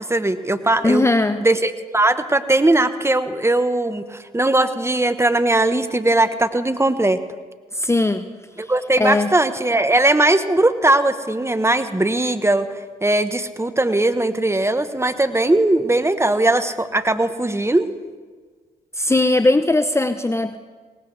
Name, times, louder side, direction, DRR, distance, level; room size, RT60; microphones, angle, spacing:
voice 1, 0.1-1.0 1.4-7.2 8.6-12.7 13.0-17.9, right 2 dB, 15° right, 11 dB, 1.2 m, -19 dB
voice 2, 0.8-1.4 7.7-8.3 9.0-9.3 19.0-20.6, left 2 dB, 15° left, 10 dB, 0.7 m, -18 dB
19.5 x 18.5 x 3.4 m, 1.5 s
hypercardioid pair, 45°, 17 cm